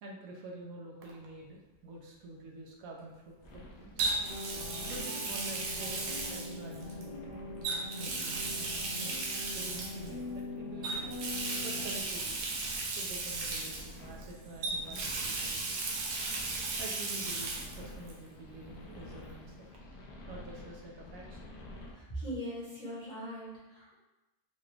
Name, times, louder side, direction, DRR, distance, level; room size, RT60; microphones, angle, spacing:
voice 1, 0.0-4.0 4.9-7.2 7.9-8.7 9.0-9.2 9.5-11.1 11.6-12.4 12.9-15.8 16.8-19.7 20.3-21.5, right 2 dB, 70° right, 0 dB, 1.0 m, -47 dB
Water tap faucet, 1.0-1.2 4.0-7.0 7.6-10.1 10.8-14.2 14.6-17.8 18.1-18.2 19.7-19.8, right 3 dB, 90° right, 1.2 m, -36 dB
sound 1, 3.4-21.9, left 1 dB, 70° left, 1.2 m, -50 dB
sound 2, 4.2-12.0, left 2 dB, 10° right, 1.1 m, -43 dB
voice 2, 21.9-23.9, equal, 35° left, -10 dB, 1.2 m, -40 dB
3.9 x 2.3 x 3.2 m, 1.1 s
omnidirectional pair, 1.7 m